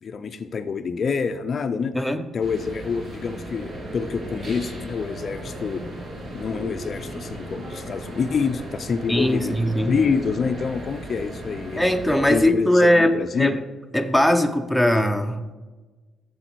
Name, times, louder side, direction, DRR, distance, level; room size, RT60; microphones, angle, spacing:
voice 1, 0.0-1.9 2.3-5.8 6.3-9.6 9.9-11.8 12.3-13.6, left 5 dB, 50° left, 10 dB, 0.4 m, -27 dB
voice 2, 1.9-2.3 9.1-9.9 11.8-13.6 13.9-15.4, left 1 dB, ahead, 6 dB, 0.6 m, -20 dB
sound 1, 2.4-12.4, right 1 dB, 55° right, 1.8 m, -36 dB
7.9 x 6.9 x 4.6 m, 1.3 s
cardioid pair, 90°, 0 cm